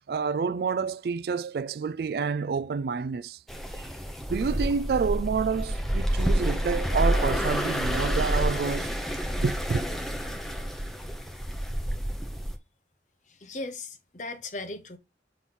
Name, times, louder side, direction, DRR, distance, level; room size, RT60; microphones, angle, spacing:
voice 1, 0.1-3.4 4.3-9.8, right 5 dB, 60° right, 0.3 m, -29 dB
sound 1, 3.5-12.6, equal, ahead, 0.7 m, -28 dB
voice 2, 13.3-15.0, left 2 dB, 40° left, 0.9 m, -37 dB
5.8 x 3.1 x 5.4 m
head